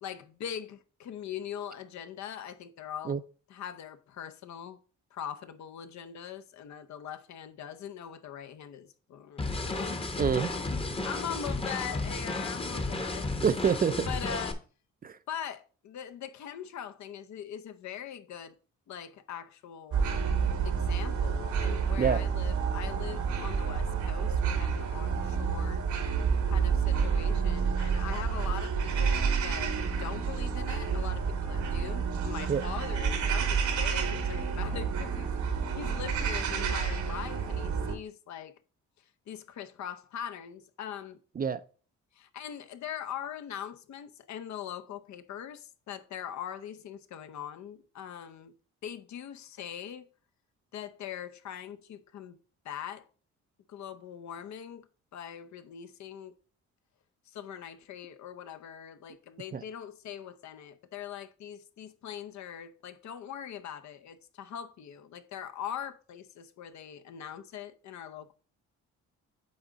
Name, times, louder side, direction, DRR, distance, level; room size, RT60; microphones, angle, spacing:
voice 1, 0.0-3.2 3.5-4.8 5.1-10.2 10.6-13.3 14.1-14.6 15.3-18.5 18.9-20.2 20.6-25.8 26.5-38.5 39.0-41.2 42.1-48.5 48.8-50.1 50.7-52.4 52.6-53.1 53.7-56.3 57.3-68.3, left 9 dB, 65° left, 0.7 m, -42 dB
sound 1, 9.4-14.5, left 2 dB, 20° left, 0.9 m, -33 dB
voice 2, 10.2-10.5 13.4-14.1 15.0-15.2 22.0-22.2 32.5-32.6 41.4-41.6 59.5-59.6, right 6 dB, 30° right, 0.4 m, -27 dB
sound 2, 19.9-37.9, right 6 dB, 70° right, 1.2 m, -29 dB
8.7 x 3.6 x 3.9 m
cardioid pair, 90°, 30 cm